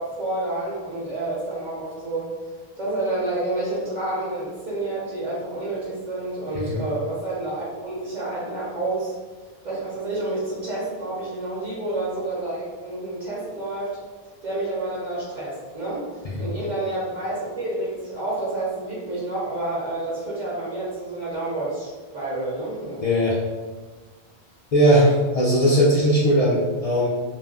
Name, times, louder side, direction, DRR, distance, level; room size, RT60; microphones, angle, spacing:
voice 1, 0.0-2.3 2.8-9.2 9.6-14.0 14.4-16.0 16.4-23.0, right 2 dB, 50° right, -6 dB, 0.8 m, -29 dB
voice 2, 23.0-23.4 24.7-27.1, equal, 50° left, -5 dB, 0.4 m, -19 dB
2.4 x 2.1 x 3.3 m, 1.3 s
omnidirectional pair, 1.0 m